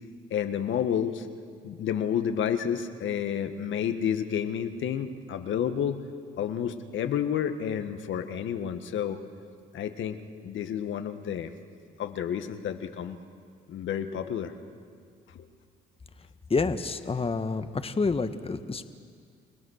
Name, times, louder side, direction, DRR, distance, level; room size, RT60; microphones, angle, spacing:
voice 1, 0.3-1.3 1.6-6.0 6.4-9.2 9.7-10.2 10.4-11.5 12.0-13.2 13.7-14.5 15.3-15.5, left 8 dB, 65° left, 8 dB, 1.6 m, -30 dB
voice 2, 16.5-18.8, left 4 dB, 25° left, 9 dB, 1.3 m, -28 dB
29.5 x 18.5 x 6.5 m, 2.2 s
hypercardioid pair, 55°, 21 cm